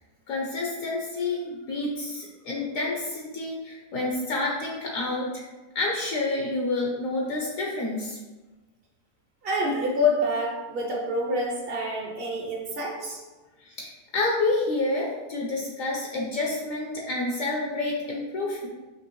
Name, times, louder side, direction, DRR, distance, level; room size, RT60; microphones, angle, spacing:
voice 1, 0.3-5.4 5.7-8.2 13.6-18.7, left 2 dB, 65° left, -2 dB, 1.0 m, -29 dB
voice 2, 9.4-13.2, left 1 dB, 55° right, -1 dB, 0.7 m, -27 dB
5.4 x 2.8 x 3.0 m, 1.2 s
omnidirectional pair, 1.7 m